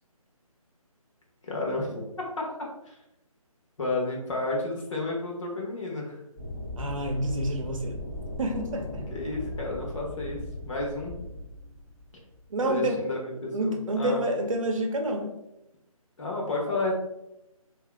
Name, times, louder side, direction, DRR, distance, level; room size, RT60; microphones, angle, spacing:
voice 1, 1.4-2.1 2.4-2.5 2.9-3.0 3.8-6.2 9.1-10.4 10.6-11.1 12.6-14.2 16.2-16.9, left 2 dB, 55° left, -2 dB, 1.2 m, -31 dB
sound 1, 6.4-12.7, left 1 dB, 20° left, 0.6 m, -38 dB
voice 2, 6.8-8.0 8.4-9.0 12.5-13.0 13.5-15.3, right 1 dB, 60° right, 3 dB, 0.7 m, -28 dB
2.8 x 2.8 x 3.4 m, 0.88 s
hypercardioid pair, 165°, 19 cm